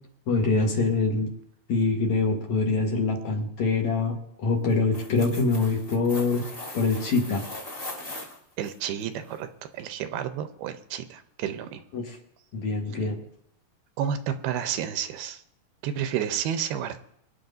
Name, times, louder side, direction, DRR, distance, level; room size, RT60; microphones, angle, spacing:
voice 1, 0.3-1.3 1.7-6.4 6.7-7.4 11.9-12.2 12.5-13.2, left 3 dB, 55° left, 0 dB, 2.4 m, -24 dB
sound 1, 4.7-8.7 9.3-9.4, left 1 dB, 25° left, 1.2 m, -39 dB
voice 2, 8.6-9.5 9.7-11.8 12.9-13.0 14.0-15.4 15.8-17.0, right 9 dB, 85° right, 9 dB, 2.6 m, -30 dB
25.5 x 10.5 x 2.7 m, 0.73 s
omnidirectional pair, 4.5 m